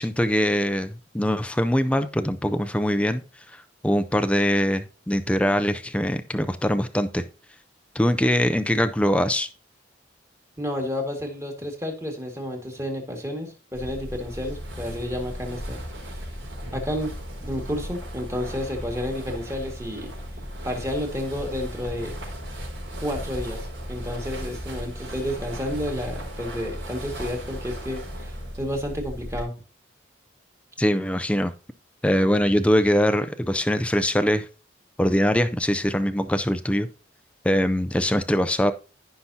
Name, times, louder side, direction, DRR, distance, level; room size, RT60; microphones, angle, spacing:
voice 1, 0.0-7.2 7.9-9.5 30.8-31.5 32.0-34.5 35.0-36.9 37.4-38.7, equal, 5° left, 9 dB, 0.4 m, -22 dB
voice 2, 10.6-15.8 16.7-17.1 17.4-20.1 20.6-22.1 23.0-29.5, left 1 dB, 15° right, 2 dB, 1.9 m, -31 dB
sound 1, 13.7-29.4, equal, 80° right, 4.8 m, -36 dB
15.0 x 5.8 x 2.8 m, 0.34 s
head